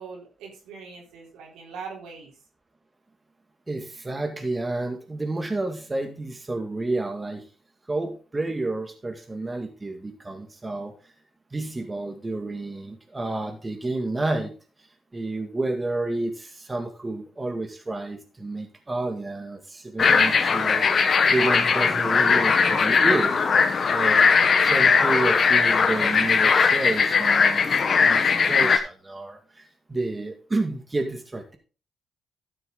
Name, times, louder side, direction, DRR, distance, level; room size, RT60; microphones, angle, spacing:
voice 1, 0.0-2.3, right 5 dB, 85° right, -1 dB, 4.1 m, -41 dB
voice 2, 3.7-7.5 7.9-10.9 11.5-14.5 15.1-23.4 23.9-24.3 24.6-27.7 28.0-31.6, right 2 dB, 25° right, 4 dB, 2.0 m, -30 dB
sound 1, 20.0-28.8, left 5 dB, 55° left, 1.3 m, -19 dB
12.5 x 6.8 x 3.9 m, 0.35 s
supercardioid pair, 55°, 0 cm